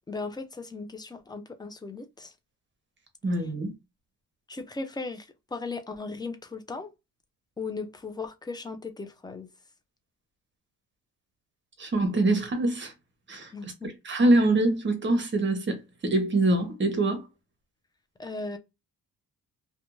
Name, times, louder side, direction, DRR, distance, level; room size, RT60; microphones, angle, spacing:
voice 1, 0.1-2.3 4.5-6.9 7.6-9.5 13.5-13.9 18.2-18.6, left 3 dB, 10° left, 0.4 m, -37 dB
voice 2, 3.2-3.7 11.8-12.9 13.3-13.5 13.8-17.2, right 2 dB, 30° right, 0.9 m, -24 dB
2.5 x 2.2 x 2.9 m
cardioid pair, 115°, 38 cm